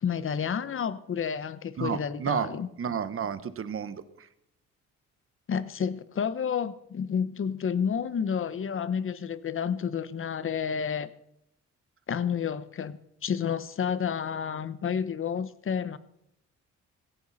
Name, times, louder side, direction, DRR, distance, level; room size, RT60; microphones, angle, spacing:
voice 1, 0.0-2.7 5.5-11.1 12.1-16.0, left 7 dB, 45° left, 14 dB, 1.0 m, -30 dB
voice 2, 1.8-2.5 2.8-4.3, right 7 dB, 45° right, 12 dB, 1.2 m, -31 dB
16.5 x 15.5 x 4.2 m, 0.77 s
cardioid pair, 90°, 30 cm